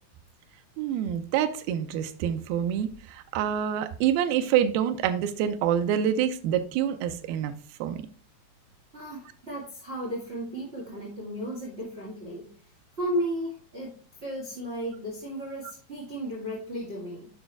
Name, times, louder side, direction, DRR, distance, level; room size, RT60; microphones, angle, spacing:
voice 1, 0.8-7.5 7.8-8.0, right 9 dB, 85° right, 2.6 m, -26 dB
voice 2, 8.9-12.5 13.0-13.9 14.2-17.3, equal, 25° right, 1.6 m, -34 dB
7.5 x 6.0 x 3.4 m
omnidirectional pair, 4.3 m